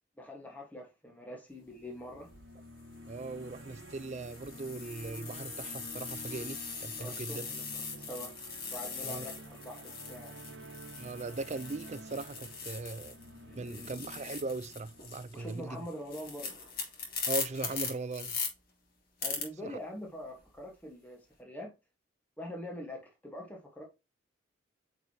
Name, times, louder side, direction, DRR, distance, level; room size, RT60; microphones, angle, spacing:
voice 1, 0.2-2.3 7.0-8.3 8.7-10.3 13.5-13.9 15.3-16.6 19.2-21.7 22.4-23.8, left 1 dB, 10° left, 1.3 m, -44 dB
sound 1, 1.8-16.0, right 1 dB, 65° right, 1.1 m, -50 dB
sound 2, 2.1-2.4 3.1-13.3 13.6-18.5 19.2-19.4, left 5 dB, 50° left, 2.4 m, -40 dB
voice 2, 3.1-7.5 9.0-9.3 11.0-13.2 13.6-15.8 17.3-18.3 19.6-19.8, right 3 dB, 35° right, 0.4 m, -39 dB
9.0 x 4.6 x 2.8 m
head